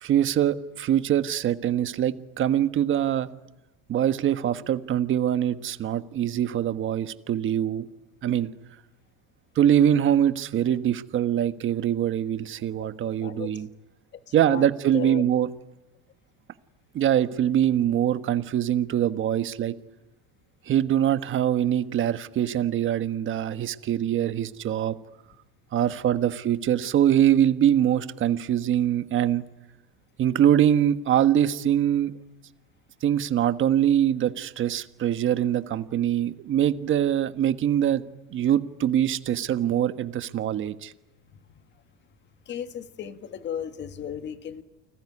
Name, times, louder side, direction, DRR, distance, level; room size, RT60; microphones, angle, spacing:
voice 1, 0.0-3.3 3.9-7.9 8.2-8.5 9.5-13.7 14.3-15.5 16.9-19.7 20.6-24.9 25.7-29.4 30.2-32.2 33.0-38.0 38.3-40.9, right 10 dB, 35° right, 11 dB, 1.4 m, -23 dB
voice 2, 13.2-13.5 14.3-14.7 14.9-15.2 17.4-17.7 41.3-41.8 42.5-44.6, left 9 dB, 30° left, 9 dB, 1.7 m, -36 dB
29.5 x 20.5 x 9.8 m, 0.99 s
cardioid pair, 155°, 37 cm